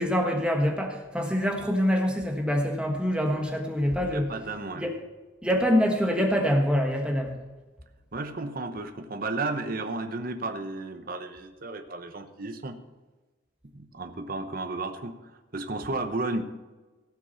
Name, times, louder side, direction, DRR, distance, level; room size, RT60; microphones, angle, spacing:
voice 1, 0.0-4.3 4.8-4.9 5.4-7.4, equal, 5° right, 2 dB, 1.4 m, -25 dB
voice 2, 4.0-4.9 8.1-12.8 13.7-16.4, right 2 dB, 50° right, 7 dB, 0.9 m, -33 dB
16.5 x 6.1 x 5.7 m, 1.2 s
head